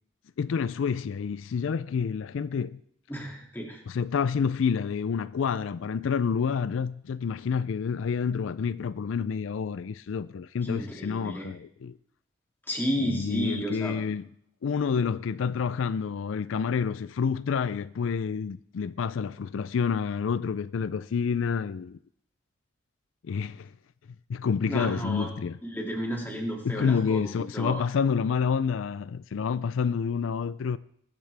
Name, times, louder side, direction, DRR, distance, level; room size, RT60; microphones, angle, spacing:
voice 1, 0.4-2.8 3.9-11.9 13.0-14.3 14.6-22.0 23.3-23.7 24.3-25.6 26.6-30.8, left 6 dB, 85° left, 0.4 m, -28 dB
voice 2, 3.1-3.8 10.6-11.5 12.7-14.0 24.7-25.3 25.6-27.8, equal, 10° left, 2.4 m, -32 dB
20.5 x 10.5 x 3.4 m
head